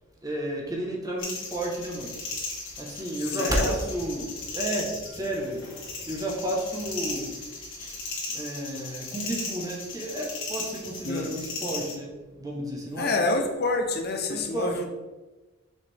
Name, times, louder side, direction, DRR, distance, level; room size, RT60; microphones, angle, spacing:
voice 1, 0.2-2.1 2.8-5.6 6.1-7.4 7.8-8.0 8.3-13.2 14.3-14.8, right 1 dB, 20° right, -2 dB, 1.3 m, -32 dB
sound 1, 1.2-11.9, left 3 dB, 75° left, 1.9 m, -36 dB
voice 2, 3.4-3.8 11.0-11.3 13.0-14.8, left 2 dB, 55° left, 5 dB, 0.8 m, -27 dB
6.3 x 5.0 x 3.6 m, 1.2 s
head